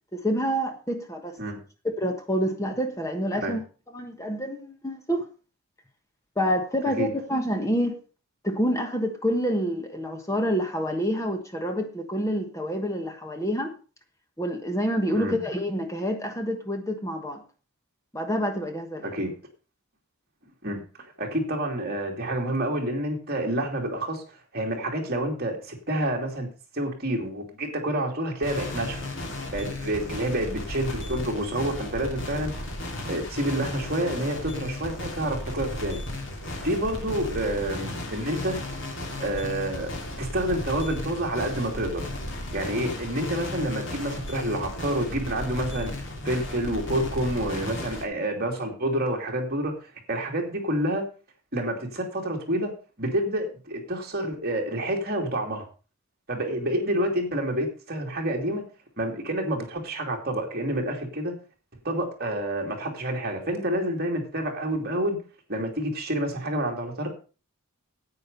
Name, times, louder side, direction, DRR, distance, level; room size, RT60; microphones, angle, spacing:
voice 1, 0.1-1.4 2.0-3.6 3.9-5.3 6.4-8.0 8.4-13.7 14.4-17.4 18.1-19.1, equal, 15° left, 5 dB, 1.3 m, -27 dB
voice 2, 21.2-24.2 24.5-26.5 26.7-29.0 29.5-32.5 33.1-36.0 36.6-38.6 39.2-39.9 40.2-42.0 42.5-45.9 46.2-49.7 50.1-51.0 51.5-52.7 53.0-55.7 56.3-58.6 59.0-61.3 61.8-65.2 65.5-67.1, right 1 dB, 45° right, 1 dB, 2.7 m, -28 dB
sound 1, 28.4-48.0, left 1 dB, 60° left, 2.7 m, -35 dB
9.6 x 8.8 x 5.4 m, 0.35 s
head